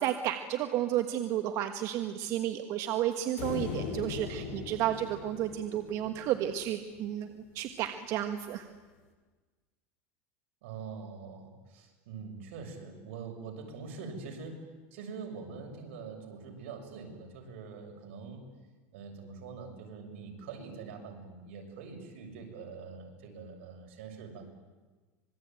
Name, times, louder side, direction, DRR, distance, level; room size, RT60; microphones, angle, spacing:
voice 1, 0.0-7.3 7.5-8.6, right 12 dB, 45° right, 7 dB, 1.5 m, -32 dB
sound 1, 3.4-6.8, left 5 dB, 80° left, 7.7 m, -39 dB
voice 2, 10.6-14.6 14.9-18.4 18.9-24.4, right 5 dB, 80° right, 3 dB, 6.7 m, -44 dB
26.0 x 22.0 x 9.1 m, 1.3 s
supercardioid pair, 150°, 7 cm